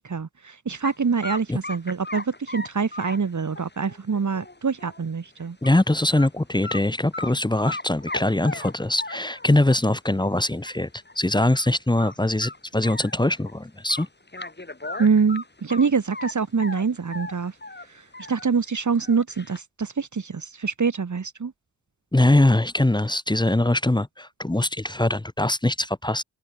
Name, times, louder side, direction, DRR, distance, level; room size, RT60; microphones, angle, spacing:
voice 1, 0.0-5.6 15.0-17.5 17.9-18.0 18.3-21.5, right 5 dB, 65° right, 1.8 m, -25 dB
sound 1, 0.8-1.0 1.2-5.0 5.4-5.8 6.2-6.3 6.6-7.3 7.7-9.6 10.2-10.3 10.7-10.8 11.1-11.2 11.5-11.7 12.0-13.5 13.9-16.3 16.6-18.5 18.9-19.6, left 2 dB, 35° left, 6.3 m, -37 dB
voice 2, 5.6-10.9 11.2-14.1 22.1-26.2, left 1 dB, 15° left, 0.9 m, -22 dB
open air
wide cardioid pair, 70°, 32 cm